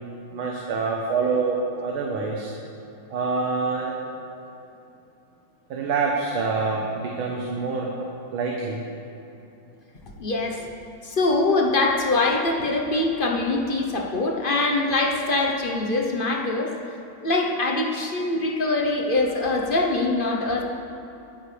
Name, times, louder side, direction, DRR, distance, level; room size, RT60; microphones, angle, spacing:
voice 1, 0.3-2.5 3.1-4.0 5.7-7.9 8.3-8.8, right 4 dB, 80° right, -1 dB, 1.9 m, -26 dB
voice 2, 10.2-10.7 11.0-16.7 17.2-20.6, left 2 dB, 40° left, 0 dB, 0.8 m, -23 dB
19.5 x 10.0 x 3.3 m, 2.9 s
omnidirectional pair, 2.2 m